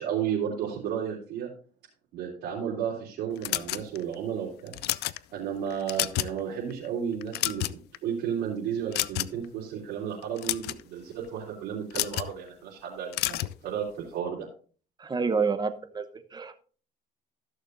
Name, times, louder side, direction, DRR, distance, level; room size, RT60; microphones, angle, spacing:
voice 1, 0.0-1.5 2.1-4.7 5.3-7.7 8.0-14.5, right 8 dB, 80° right, -7 dB, 3.5 m, -33 dB
sound 1, 3.4-4.1 4.7-5.2 5.7-6.4 6.7-6.9 7.2-8.0 8.9-9.5 10.2-10.8 11.9-12.3 13.1-13.6, left 17 dB, 75° left, 0.4 m, -29 dB
voice 2, 15.0-16.6, right 5 dB, 25° right, 11 dB, 0.9 m, -29 dB
15.0 x 6.6 x 2.7 m, 0.40 s
cardioid pair, 110°, 17 cm